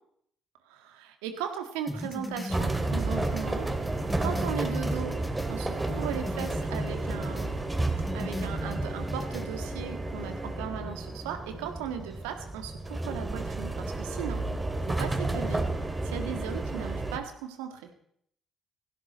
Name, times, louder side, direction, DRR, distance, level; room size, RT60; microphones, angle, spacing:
voice 1, 0.7-3.7 4.2-5.2 5.5-7.5 8.1-14.4 14.9-15.6 16.0-17.9, right 8 dB, 75° right, 7 dB, 1.7 m, -37 dB
sound 1, 1.9-5.6 5.9-7.5 7.8-9.5, left 1 dB, 10° left, 2.0 m, -37 dB
sound 2, 2.5-17.2, right 2 dB, 15° right, 2.5 m, -32 dB
16.5 x 16.5 x 4.2 m, 0.68 s
figure-of-eight pair, 45°, 0 cm